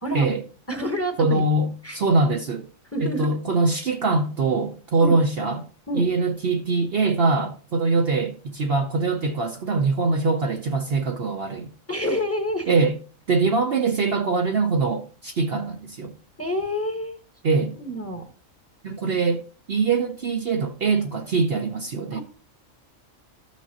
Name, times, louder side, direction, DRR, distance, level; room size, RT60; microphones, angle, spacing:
voice 1, 0.0-0.3 0.7-1.4 1.8-2.0 2.9-3.3 5.0-5.2 5.9-6.1 11.9-12.7 16.4-17.2 17.8-18.3 22.1-22.2, equal, 10° left, 1.1 m, -28 dB
voice 2, 1.2-2.7 3.0-5.7 5.9-11.7 12.7-13.0 13.3-16.1 17.4-17.8 18.8-19.4 19.7-22.2, right 3 dB, 55° right, 0.8 m, -23 dB
13.5 x 6.1 x 2.8 m
omnidirectional pair, 1.4 m